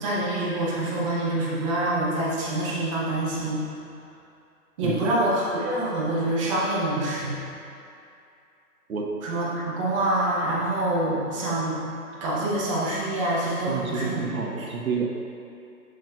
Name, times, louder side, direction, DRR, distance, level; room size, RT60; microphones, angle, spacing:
voice 1, 0.0-3.6 4.8-7.4 9.2-11.8 12.2-14.3 14.6-14.7, right 1 dB, 20° right, -6 dB, 0.9 m, -26 dB
voice 2, 4.8-5.1 8.9-9.1 13.7-15.1, right 5 dB, 65° right, 0 dB, 0.8 m, -29 dB
7.8 x 6.3 x 2.4 m, 2.5 s
figure-of-eight pair, 135°, 46 cm